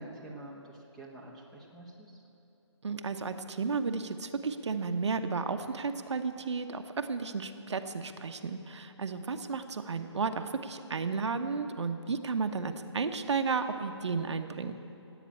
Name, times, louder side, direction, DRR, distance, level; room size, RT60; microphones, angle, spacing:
voice 1, 0.0-2.2, right 1 dB, 5° left, -3 dB, 1.3 m, -47 dB
voice 2, 2.8-14.7, right 4 dB, 70° right, 7 dB, 1.0 m, -33 dB
15.5 x 9.2 x 8.5 m, 2.8 s
hypercardioid pair, 160°, 16 cm